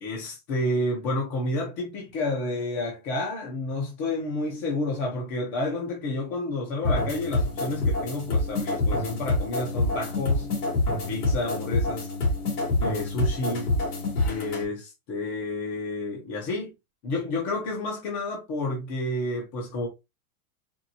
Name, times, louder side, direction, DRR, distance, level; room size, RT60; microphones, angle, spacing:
voice 1, 0.0-10.5 11.1-12.1 12.8-13.7 14.2-16.7 17.0-19.9, left 2 dB, 20° left, 0.6 m, -30 dB
sound 1, 6.8-14.6, left 2 dB, 80° left, 2.6 m, -26 dB
4.4 x 3.1 x 2.7 m
supercardioid pair, 175°, 45 cm